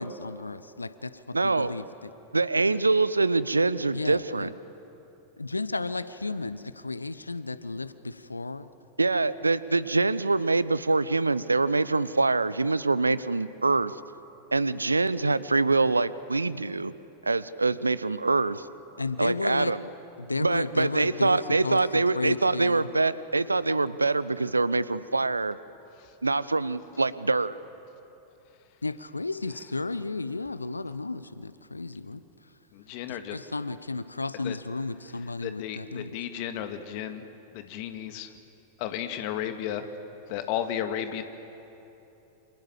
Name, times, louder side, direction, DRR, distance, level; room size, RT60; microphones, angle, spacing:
voice 1, 0.0-2.1 3.9-4.5 5.4-8.7 19.0-19.7 20.2-21.8 22.2-22.9 28.8-32.2 33.1-36.2, left 3 dB, 80° left, 15 dB, 0.8 m, -33 dB
voice 2, 1.3-1.7 2.3-4.5 9.0-13.9 14.5-16.9 17.2-18.7 19.2-19.8 20.4-25.6 26.2-27.6, right 3 dB, 80° right, 17 dB, 0.7 m, -24 dB
voice 3, 32.7-33.3 34.4-34.5 35.4-37.2 37.5-38.3 38.8-39.9 40.3-41.2, left 10 dB, 45° left, 7 dB, 2.1 m, -33 dB
28.5 x 26.5 x 7.4 m, 3.0 s
figure-of-eight pair, 90°, 0 cm